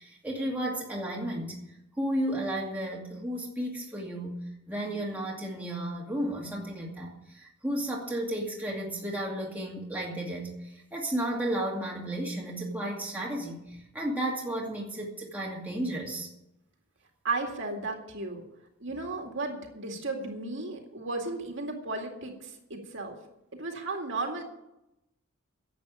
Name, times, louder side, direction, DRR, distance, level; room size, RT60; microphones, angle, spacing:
voice 1, 0.0-1.6 2.0-4.4 4.7-16.3, right 1 dB, 5° right, -2 dB, 2.3 m, -33 dB
voice 2, 17.2-18.4 18.8-23.2 23.5-24.4, right 3 dB, 55° right, 2 dB, 2.2 m, -34 dB
11.0 x 8.3 x 10.0 m, 0.87 s
head